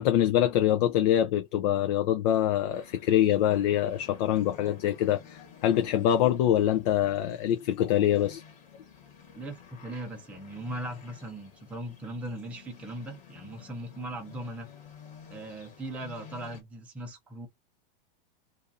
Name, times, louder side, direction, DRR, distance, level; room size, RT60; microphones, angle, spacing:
voice 1, 0.0-8.4, left 11 dB, 45° left, 0.4 m, -25 dB
sound 1, 2.7-16.6, left 7 dB, 25° left, 1.3 m, -52 dB
voice 2, 9.3-14.7 15.3-17.5, right 1 dB, 5° right, 0.5 m, -39 dB
2.5 x 2.4 x 3.9 m
supercardioid pair, 145°, 29 cm